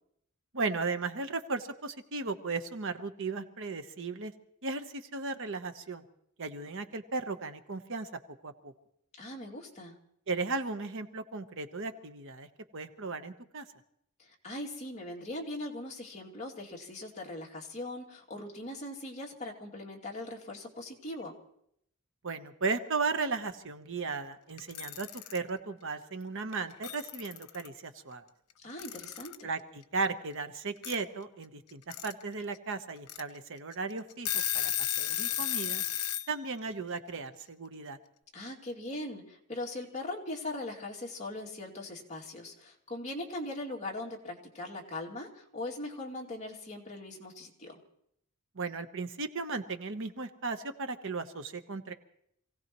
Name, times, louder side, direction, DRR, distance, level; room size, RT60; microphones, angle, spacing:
voice 1, 0.5-4.3 4.6-6.0 6.4-8.1 8.4-8.7 10.3-12.5 12.7-13.6 22.2-28.2 29.4-34.7 35.0-35.8 36.3-38.0 48.5-51.9, right 4 dB, 60° right, 8 dB, 1.1 m, -36 dB
voice 2, 9.2-10.0 14.2-21.4 28.6-29.5 38.3-47.8, left 1 dB, 30° left, -2 dB, 2.6 m, -40 dB
Alarm / Clock, 24.6-25.4 26.5-26.6 26.8-27.7 28.8-29.4 30.8-31.0 31.7-32.1 32.6-32.7 33.1-33.2 33.7-33.8 34.1-36.3, left 12 dB, 90° left, 0.9 m, -33 dB
27.5 x 17.0 x 3.1 m, 0.73 s
head